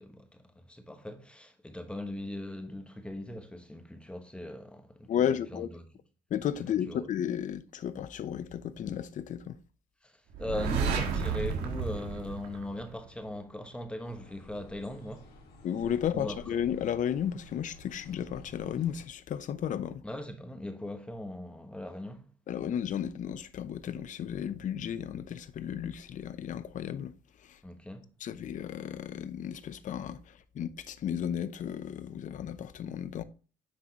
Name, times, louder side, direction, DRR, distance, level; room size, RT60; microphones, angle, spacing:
voice 1, 0.0-5.9 6.5-7.1 10.0-15.3 16.1-16.4 20.0-22.3 27.6-28.1, left 1 dB, 5° left, 1.1 m, -40 dB
voice 2, 5.1-5.7 6.3-9.6 15.6-20.0 22.5-27.1 27.5-27.6 28.2-30.2 30.5-33.2, left 9 dB, 50° left, 0.7 m, -33 dB
sound 1, 10.3-13.2, right 5 dB, 85° right, 1.5 m, -32 dB
sound 2, 14.0-19.1, left 1 dB, 65° left, 2.4 m, -52 dB
9.6 x 3.9 x 2.8 m
cardioid pair, 110°, 17 cm